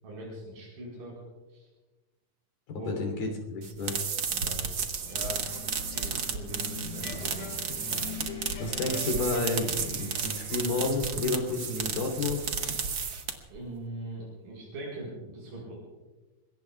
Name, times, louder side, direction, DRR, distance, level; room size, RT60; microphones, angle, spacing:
voice 1, 0.0-1.2 1.5-1.7 2.7-3.0 4.3-5.5 6.0-8.7 13.5-15.9, right 1 dB, 75° right, -4 dB, 6.5 m, -42 dB
voice 2, 2.7-4.0 8.6-12.8, left 3 dB, 85° left, 2 dB, 5.1 m, -31 dB
sound 1, 3.6-13.6, right 6 dB, 60° right, 1.3 m, -33 dB
sound 2, 5.0-10.9, left 5 dB, 60° left, 3.1 m, -43 dB
Coin (dropping), 7.1-10.7, left 1 dB, ahead, 7.2 m, -54 dB
26.5 x 21.5 x 2.4 m, 1.2 s
omnidirectional pair, 4.0 m